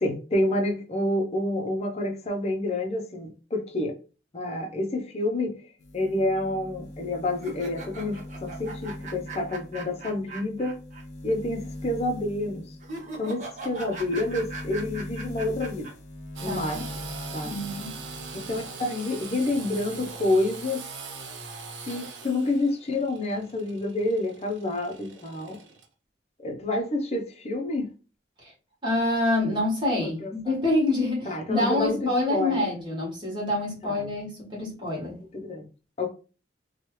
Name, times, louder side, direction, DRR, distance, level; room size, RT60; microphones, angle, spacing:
voice 1, 0.0-4.0 4.3-5.5 5.9-10.8 11.2-12.8 13.2-15.9 16.4-16.8 17.3-17.6 18.3-20.8 21.9-25.6 26.4-27.9 30.2-30.3 31.3-32.7 33.8-34.1 35.2-35.7 36.0-36.1, left 2 dB, 35° left, 0.6 m, -28 dB
sound 1, 5.8-18.8 19.1-20.1, left 1 dB, 90° left, 0.6 m, -41 dB
sound 2, 7.3-11.0 11.3-11.4 12.8-15.9, right 3 dB, 40° right, 0.8 m, -40 dB
voice 2, 16.4-16.9 17.4-18.0 28.4-28.5 28.8-35.2, left 2 dB, 25° right, 1.4 m, -27 dB
Engine / Sawing, 16.4-25.9, right 4 dB, 85° right, 0.6 m, -41 dB
3.0 x 2.3 x 3.0 m
head